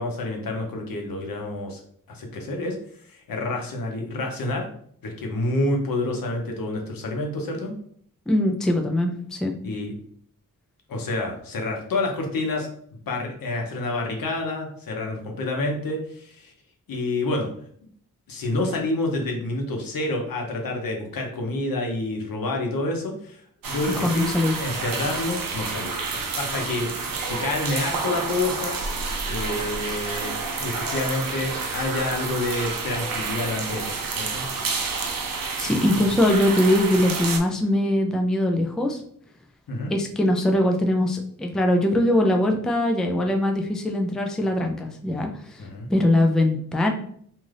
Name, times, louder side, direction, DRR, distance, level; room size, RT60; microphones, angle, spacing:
voice 1, 0.0-1.8 2.1-4.7 5.0-7.7 9.6-9.9 10.9-12.7 13.1-16.5 16.9-17.5 18.3-24.3 24.6-28.8 29.2-34.4 39.7-39.9 45.6-45.9, left 2 dB, 85° left, 2 dB, 0.8 m, -28 dB
voice 2, 8.3-9.5 23.9-24.6 35.6-39.0 39.9-45.6 45.9-46.9, left 1 dB, ahead, 3 dB, 0.3 m, -22 dB
sound 1, 23.6-37.4, right 4 dB, 80° right, 0.6 m, -29 dB
2.6 x 2.4 x 3.2 m, 0.62 s
wide cardioid pair, 100°, 34 cm